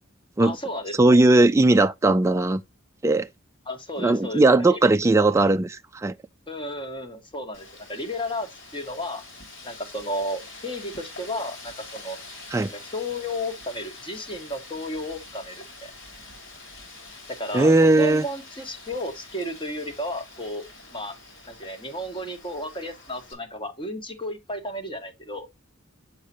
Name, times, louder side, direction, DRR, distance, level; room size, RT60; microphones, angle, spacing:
voice 1, 0.4-1.2 3.6-4.9 6.5-9.2 9.6-12.2 12.7-15.9 17.3-20.7 20.9-21.1 21.5-25.5, left 1 dB, 25° left, 1.5 m, -33 dB
voice 2, 1.0-2.6 3.0-3.3 4.0-6.1 12.5-12.7 17.5-18.2, right 2 dB, 15° right, 0.3 m, -18 dB
Wind, 7.5-23.3, left 3 dB, 65° left, 3.5 m, -45 dB
7.3 x 6.7 x 2.8 m
head